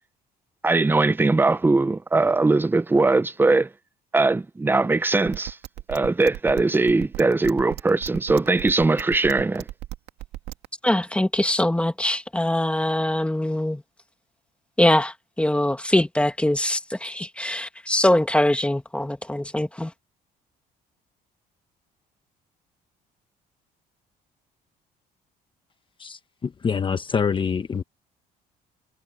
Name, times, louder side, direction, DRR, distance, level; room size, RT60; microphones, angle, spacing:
voice 1, 0.6-3.7 4.1-5.6 5.9-9.6, right 3 dB, 10° right, 0.7 m, -20 dB
sound 1, 5.3-10.7, right 15 dB, 85° right, 2.0 m, -35 dB
voice 2, 10.8-13.8 14.8-19.9, left 1 dB, 5° left, 1.9 m, -22 dB
voice 3, 26.0-27.8, left 6 dB, 30° left, 1.1 m, -26 dB
cardioid pair, 110°, 17 cm